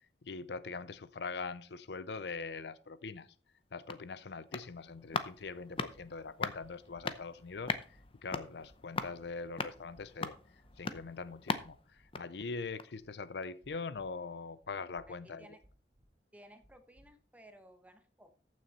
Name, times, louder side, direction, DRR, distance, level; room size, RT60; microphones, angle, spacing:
voice 1, 0.2-3.3 3.7-10.4 10.8-15.5, left 4 dB, 70° left, 0.6 m, -42 dB
sound 1, 3.5-13.1 13.4-13.5, left 4 dB, 30° left, 0.7 m, -41 dB
sound 2, 5.9-6.0 6.6-7.0 7.6-8.1 8.6-9.0 9.6-10.0 10.6-11.0 11.6-12.1 12.6-13.1 13.6-14.1 14.6-15.1 15.6-16.1 16.6-17.1, equal, 35° right, 4.4 m, -64 dB
voice 2, 15.1-15.6 16.3-18.3, right 1 dB, 10° right, 1.1 m, -57 dB
14.0 x 6.3 x 4.2 m
head